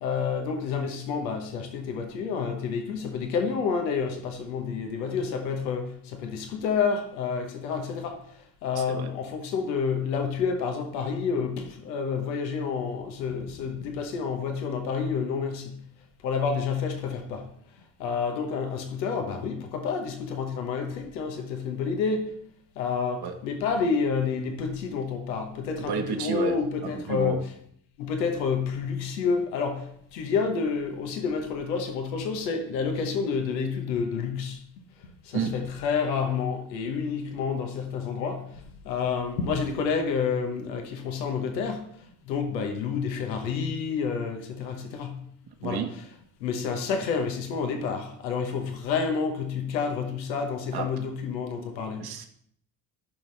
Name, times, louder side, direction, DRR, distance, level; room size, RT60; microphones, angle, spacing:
voice 1, 0.0-15.9 16.2-17.5 18.0-22.4 22.8-27.5 28.0-45.3 45.6-45.8 46.4-52.0, left 5 dB, 90° left, 4 dB, 1.1 m, -29 dB
voice 2, 8.7-9.1 23.2-23.4 25.9-26.5 26.8-27.4 35.3-35.6 45.6-45.9 50.7-50.9 52.0-52.3, right 6 dB, 50° right, 5 dB, 1.3 m, -31 dB
13.5 x 5.8 x 3.3 m, 0.67 s
hypercardioid pair, 50°, 49 cm